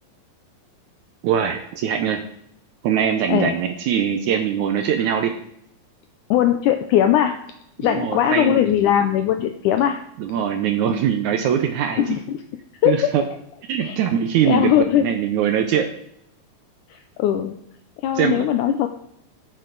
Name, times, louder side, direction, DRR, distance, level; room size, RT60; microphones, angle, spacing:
voice 1, 1.2-2.2 2.8-5.3 7.8-8.6 10.2-12.0 12.9-13.2 13.7-14.7 15.0-15.9 18.2-18.5, right 8 dB, 80° right, 6 dB, 1.8 m, -22 dB
voice 2, 6.3-7.4 7.8-10.0 12.0-12.4 12.8-13.1 13.8-14.0 14.5-15.1 16.9-17.5 18.0-18.9, left 10 dB, 85° left, 6 dB, 1.8 m, -19 dB
13.5 x 6.8 x 3.9 m, 0.75 s
omnidirectional pair, 4.1 m